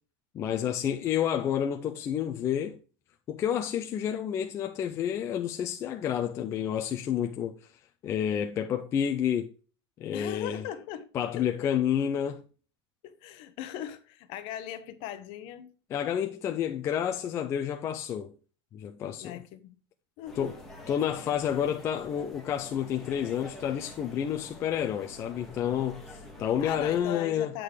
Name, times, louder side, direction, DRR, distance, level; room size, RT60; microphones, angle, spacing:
voice 1, 0.3-2.8 3.3-7.5 8.0-9.5 10.0-10.6 11.1-12.4 15.9-18.3 18.7-19.4 20.4-20.5 20.9-27.5, left 9 dB, 20° left, 0.3 m, -29 dB
voice 2, 10.1-11.1 11.3-11.8 13.0-15.7 19.2-19.8 20.2-20.5 26.6-27.6, left 11 dB, 40° left, 0.8 m, -39 dB
sound 1, 20.3-27.0, left 1 dB, ahead, 1.2 m, -47 dB
8.2 x 3.7 x 4.8 m
supercardioid pair, 170°, 14 cm